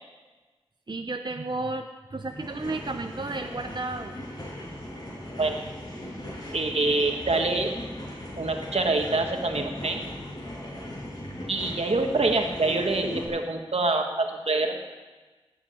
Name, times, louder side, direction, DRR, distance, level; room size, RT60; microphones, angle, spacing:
voice 1, 0.9-4.2, right 2 dB, 45° right, 5 dB, 0.8 m, -33 dB
sound 1, 2.3-13.2, left 1 dB, 40° left, 6.5 m, -38 dB
voice 2, 6.5-7.7 8.4-10.1 11.5-14.7, right 2 dB, 75° right, 3 dB, 1.8 m, -25 dB
18.0 x 8.0 x 8.9 m, 1.3 s
wide cardioid pair, 50°, 10 cm